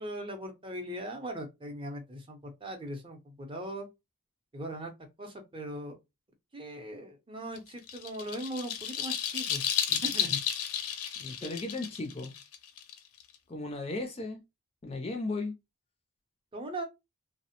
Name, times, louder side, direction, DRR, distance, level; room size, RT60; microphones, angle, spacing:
voice 1, 0.0-3.9 4.5-4.9 5.2-6.0 6.5-10.4 11.4-11.6 16.5-16.8, right 1 dB, 25° right, 0.6 m, -39 dB
sound 1, 7.6-13.4, left 9 dB, 80° left, 0.5 m, -33 dB
voice 2, 11.2-12.3 13.5-14.4 14.8-15.5, left 2 dB, 25° left, 0.4 m, -35 dB
2.7 x 2.0 x 2.8 m
head